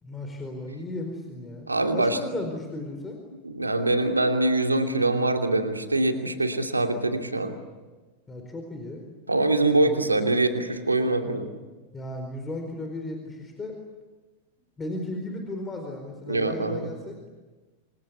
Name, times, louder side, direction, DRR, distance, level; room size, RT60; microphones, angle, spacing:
voice 1, 0.0-3.2 8.3-9.1 9.8-10.1 11.9-13.8 14.8-17.2, left 2 dB, 15° left, 4 dB, 4.5 m, -35 dB
voice 2, 1.7-2.2 3.4-7.5 9.3-11.5 16.3-16.9, right 2 dB, 80° right, 5 dB, 2.8 m, -24 dB
28.5 x 24.5 x 8.4 m, 1.3 s
figure-of-eight pair, 90°, 0 cm